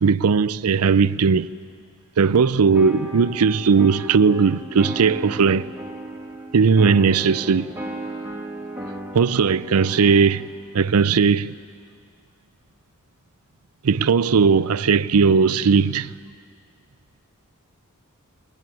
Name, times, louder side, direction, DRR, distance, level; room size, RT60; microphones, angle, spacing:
voice 1, 0.0-1.5 2.2-5.7 6.5-7.7 9.1-10.4 10.7-11.5 13.8-16.1, right 5 dB, 85° right, 0.5 m, -18 dB
sound 1, 2.7-10.5, right 1 dB, 10° right, 1.9 m, -35 dB
22.0 x 19.5 x 9.4 m
head